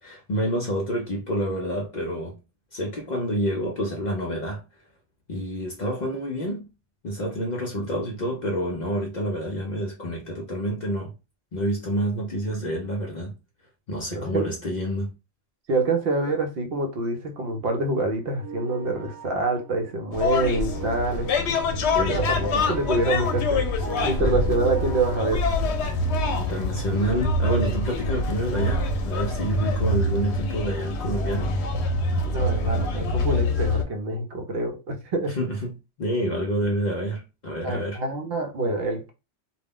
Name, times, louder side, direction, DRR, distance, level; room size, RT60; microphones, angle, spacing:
voice 1, 0.0-2.4 2.7-4.6 5.3-6.7 7.0-11.1 11.5-13.3 13.9-15.2 21.9-22.5 24.2-24.5 26.4-31.5 35.3-35.7 36.0-38.0, equal, 55° left, 0.5 m, -28 dB
voice 2, 14.1-14.5 15.7-21.3 22.0-22.4 22.7-23.7 24.0-25.4 32.2-35.4 36.6-36.7 37.6-39.1, right 2 dB, 65° right, 0.8 m, -26 dB
sound 1, 17.2-25.2, right 3 dB, 35° right, 0.4 m, -40 dB
sound 2, 20.1-33.8, left 2 dB, 75° left, 0.8 m, -25 dB
2.3 x 2.0 x 3.5 m
omnidirectional pair, 1.1 m